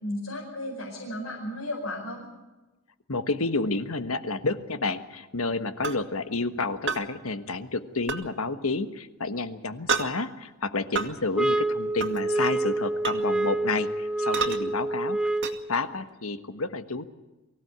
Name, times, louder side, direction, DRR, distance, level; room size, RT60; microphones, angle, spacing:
voice 1, 0.0-2.3, left 1 dB, 90° left, -3 dB, 5.4 m, -34 dB
voice 2, 3.1-15.2 15.7-17.0, left 3 dB, 70° left, 11 dB, 1.4 m, -30 dB
sound 1, 5.8-6.0 6.9-7.0 8.1-8.2 9.9-10.1 11.0-11.1 12.0-12.2 13.0-13.2 14.3-14.6 15.4-15.5, right 4 dB, 60° right, 2.1 m, -28 dB
sound 2, 11.3-15.7, right 2 dB, 5° right, 0.7 m, -27 dB
23.5 x 16.5 x 8.2 m, 1.1 s
head